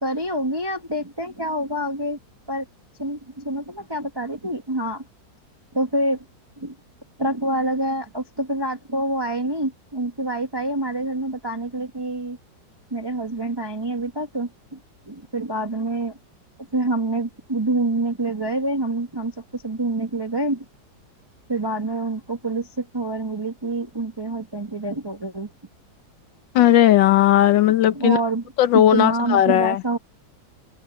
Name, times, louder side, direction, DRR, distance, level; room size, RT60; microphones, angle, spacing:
voice 1, 0.0-2.2 2.5-2.7 3.0-5.0 5.7-6.2 6.6-6.7 7.2-12.4 12.9-14.8 15.1-16.2 16.7-20.6 21.5-25.5 27.9-28.4 28.7-30.0, right 2 dB, 15° right, 1.2 m, -26 dB
voice 2, 26.5-28.2 28.6-29.8, left 12 dB, 80° left, 1.6 m, -16 dB
open air
omnidirectional pair, 2.0 m